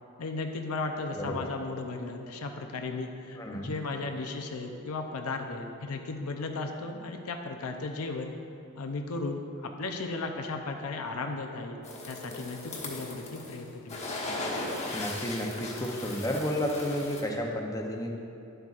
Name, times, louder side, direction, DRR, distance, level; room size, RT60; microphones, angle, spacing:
voice 1, 0.2-8.3 8.8-11.8 12.1-14.4, left 3 dB, 90° left, 4 dB, 0.6 m, -35 dB
voice 2, 1.2-1.5 3.4-3.7 14.9-18.2, equal, 15° left, 1 dB, 0.7 m, -32 dB
sound 1, 11.8-13.6 13.9-17.2, left 2 dB, 30° left, 1.2 m, -37 dB
11.0 x 7.8 x 2.5 m, 2.6 s
head